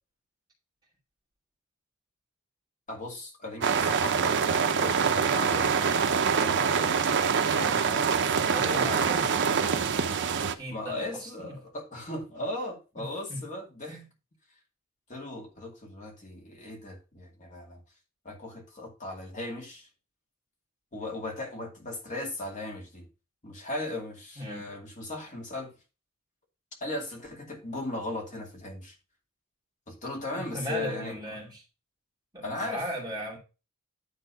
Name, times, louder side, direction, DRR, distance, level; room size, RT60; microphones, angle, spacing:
voice 1, 2.9-5.9 6.4-7.0 7.4-9.3 10.7-14.0 15.1-17.8 18.2-19.9 20.9-23.1 23.4-25.7 26.8-29.0 29.9-31.4 32.4-32.8, left 2 dB, 35° left, 2.2 m, -37 dB
sound 1, 3.6-10.5, right 6 dB, 55° right, 0.7 m, -25 dB
voice 2, 8.3-9.5 10.0-11.6 13.0-13.4 13.9-14.0 24.4-24.7 30.3-31.6 32.3-33.4, equal, 20° right, 2.4 m, -38 dB
10.0 x 3.7 x 5.2 m
head